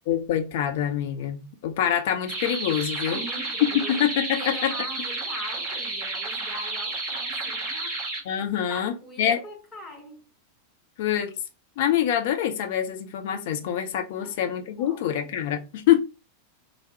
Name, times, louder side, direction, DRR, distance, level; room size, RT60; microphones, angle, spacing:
voice 1, 0.1-3.2 3.9-4.7 8.3-9.4 11.0-11.3 11.8-16.0, left 10 dB, 50° left, 0.6 m, -25 dB
sound 1, 2.3-8.2, right 2 dB, 25° right, 1.5 m, -31 dB
voice 2, 3.0-8.0 8.6-10.3 14.2-15.3, left 1 dB, 15° left, 1.1 m, -42 dB
3.5 x 2.0 x 4.0 m
figure-of-eight pair, 90°, 0 cm